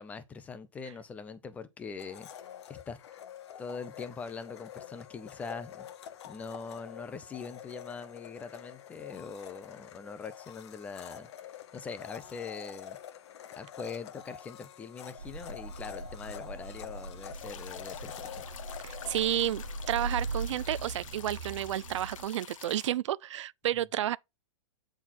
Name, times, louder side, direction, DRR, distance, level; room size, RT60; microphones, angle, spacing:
voice 1, 0.0-2.3 2.7-3.0 3.6-5.9 6.3-11.3 11.7-13.0 13.6-18.4, left 5 dB, 10° left, 0.4 m, -42 dB
Domestic sounds home sounds, 2.0-20.8, left 10 dB, 55° left, 1.1 m, -47 dB
sound 1, 15.2-22.2, right 3 dB, 80° right, 1.5 m, -40 dB
sound 2, 17.3-22.9, left 9 dB, 75° left, 0.9 m, -49 dB
voice 2, 18.8-24.2, right 12 dB, 65° right, 0.4 m, -31 dB
8.7 x 4.1 x 4.2 m
hypercardioid pair, 155°, 17 cm